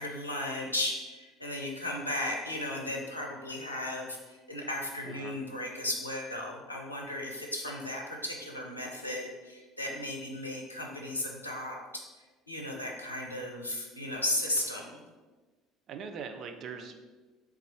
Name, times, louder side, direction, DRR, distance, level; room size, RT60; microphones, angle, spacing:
voice 1, 0.0-11.8 12.5-15.0, left 1 dB, 85° left, -1 dB, 0.5 m, -35 dB
voice 2, 5.0-5.4 15.9-17.1, right 6 dB, 45° right, 6 dB, 0.4 m, -41 dB
3.8 x 2.3 x 4.3 m, 1.3 s
figure-of-eight pair, 60°, 0 cm